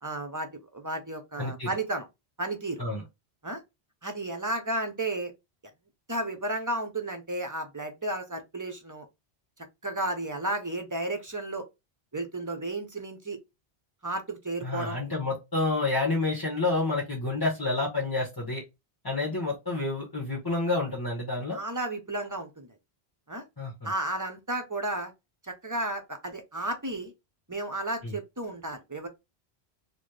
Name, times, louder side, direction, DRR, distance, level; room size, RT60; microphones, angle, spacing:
voice 1, 0.0-2.1 2.4-2.8 3.4-3.6 4.0-5.3 6.1-9.1 9.8-11.6 12.1-13.4 14.0-15.0 21.5-22.7 23.3-23.4 23.8-25.1 25.4-27.1 27.5-29.1, right 2 dB, 20° right, 0.6 m, -33 dB
voice 2, 1.4-1.7 2.8-3.0 14.6-18.6 19.0-21.6 23.6-23.9 28.0-28.1, left 2 dB, 20° left, 1.1 m, -29 dB
4.1 x 2.2 x 3.2 m
omnidirectional pair, 1.1 m